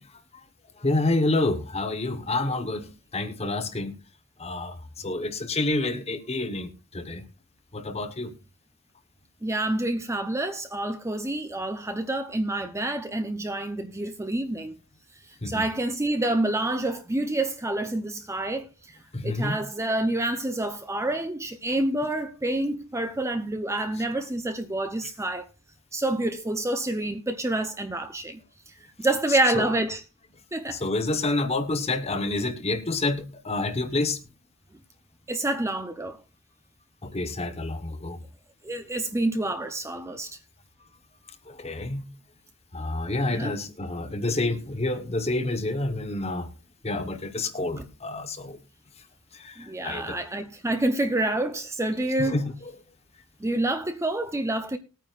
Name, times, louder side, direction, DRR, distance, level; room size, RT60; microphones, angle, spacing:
voice 1, 0.8-3.9 4.4-4.8 5.0-7.2 7.7-8.3 15.4-15.6 19.1-19.6 29.5-29.7 30.7-34.2 37.0-38.2 41.5-42.0 42.7-46.5 46.8-48.6 49.3-49.6 49.8-50.2 52.2-52.5, left 2 dB, 30° left, 1.0 m, -28 dB
voice 2, 9.4-14.8 15.4-19.0 19.2-25.5 25.9-28.4 28.7-28.8 29.0-30.0 30.5-30.8 35.3-36.2 38.6-40.4 43.3-43.5 47.8-47.9 49.6-52.4 53.4-54.8, right 1 dB, 15° right, 0.6 m, -28 dB
19.5 x 9.1 x 2.4 m
head